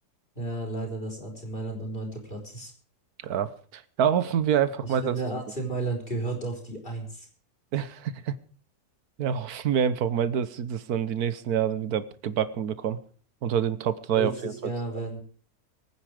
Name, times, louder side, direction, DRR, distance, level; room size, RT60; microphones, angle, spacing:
voice 1, 0.3-2.7 4.8-7.3 14.1-15.2, right 2 dB, 35° left, 2 dB, 5.2 m, -33 dB
voice 2, 3.2-5.1 7.7-8.3 9.2-13.0 13.4-14.7, right 8 dB, 75° right, 14 dB, 1.5 m, -27 dB
23.5 x 9.6 x 5.0 m, 0.43 s
omnidirectional pair, 1.6 m